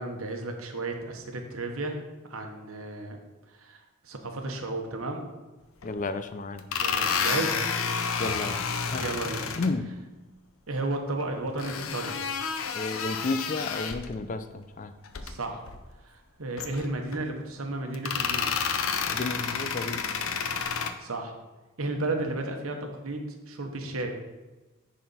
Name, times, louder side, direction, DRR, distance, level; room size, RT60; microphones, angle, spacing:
voice 1, 0.0-2.0 2.3-3.2 3.5-5.2 6.8-7.6 9.0-9.5 10.7-12.2 15.2-15.6 16.0-18.6 21.0-21.3 21.8-24.1, right 2 dB, 85° right, 4 dB, 1.1 m, -33 dB
sound 1, 5.8-5.9 6.6-9.7 11.6-14.1 15.0-15.3 15.7-15.8 16.6-17.2 17.9-20.9, left 6 dB, 75° left, 0.6 m, -30 dB
voice 2, 5.8-6.6 8.2-8.6 8.9-9.1 9.6-9.9 12.7-14.9 19.1-20.0, left 3 dB, 40° left, 10 dB, 0.4 m, -32 dB
10.5 x 4.2 x 4.2 m, 1.1 s
head